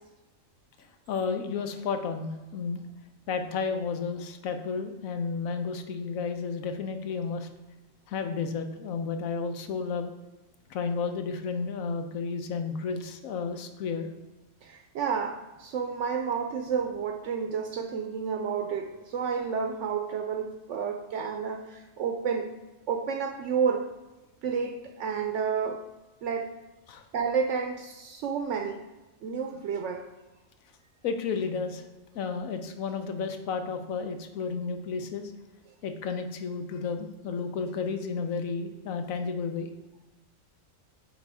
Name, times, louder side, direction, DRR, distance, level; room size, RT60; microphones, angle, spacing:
voice 1, 1.1-2.8 3.3-7.5 8.1-10.1 10.7-14.1 26.9-27.0 31.0-31.8 32.1-35.3 35.8-39.7, left 5 dB, 85° left, 7 dB, 1.1 m, -32 dB
voice 2, 14.6-22.5 22.9-23.9 24.4-25.8 26.2-26.6 27.1-28.8 29.2-30.0, right 6 dB, 70° right, 5 dB, 0.8 m, -30 dB
8.9 x 4.1 x 3.5 m, 1.1 s
omnidirectional pair, 1.4 m